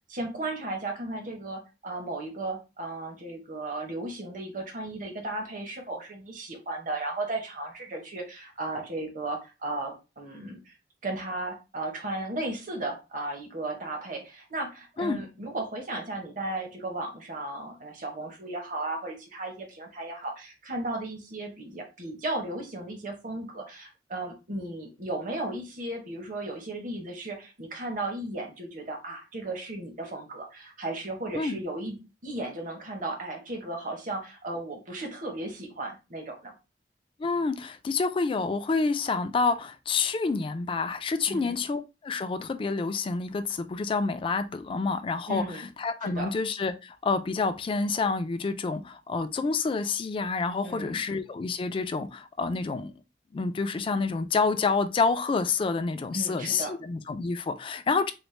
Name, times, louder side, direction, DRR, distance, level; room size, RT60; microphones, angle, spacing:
voice 1, 0.1-10.7 11.0-36.5 41.3-41.6 45.3-45.7 46.0-46.3 50.6-51.0 56.1-56.8, right 2 dB, 50° right, 0.9 m, -35 dB
voice 2, 37.2-52.9 53.3-58.1, left 4 dB, 30° left, 0.3 m, -28 dB
4.1 x 2.0 x 3.1 m
head